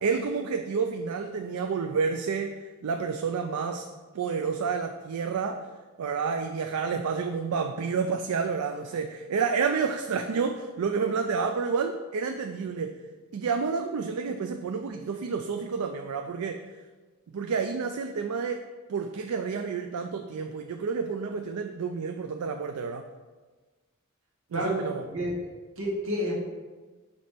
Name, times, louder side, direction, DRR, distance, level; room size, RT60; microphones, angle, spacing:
voice 1, 0.0-3.9 4.1-5.7 6.0-13.0 13.3-16.7 17.3-23.1 24.5-25.1, right 5 dB, 90° right, 6 dB, 0.4 m, -30 dB
voice 2, 25.8-26.3, equal, 65° right, -3 dB, 1.7 m, -29 dB
6.0 x 4.1 x 5.0 m, 1.3 s
head